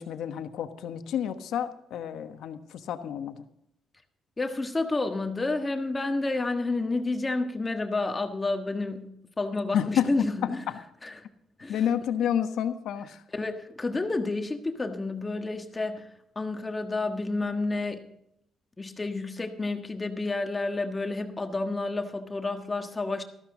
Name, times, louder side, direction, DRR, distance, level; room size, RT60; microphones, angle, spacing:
voice 1, 0.0-3.4 9.7-10.3 10.7-10.8 11.7-13.2, left 9 dB, 80° left, 9 dB, 1.1 m, -29 dB
voice 2, 4.4-10.6 11.0-11.2 11.6-11.8 13.3-16.1 16.3-18.0 18.8-23.2, left 2 dB, 20° left, 5 dB, 1.4 m, -30 dB
13.5 x 13.0 x 3.8 m, 0.78 s
cardioid pair, 90°, 0 cm